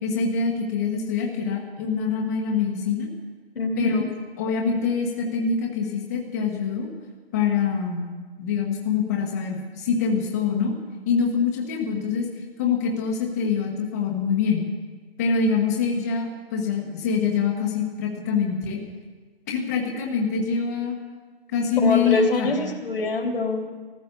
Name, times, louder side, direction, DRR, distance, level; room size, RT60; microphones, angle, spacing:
voice 1, 0.0-3.1 3.8-4.0 4.4-6.9 7.3-8.1 8.4-10.7 11.1-12.3 12.6-14.6 15.2-18.8 19.5-21.0 21.5-22.6, left 6 dB, 15° left, 0 dB, 1.2 m, -24 dB
voice 2, 3.5-4.0 21.8-23.7, left 2 dB, 80° left, 0 dB, 3.0 m, -24 dB
15.0 x 14.0 x 6.7 m, 1.4 s
hypercardioid pair, 170°, 30 cm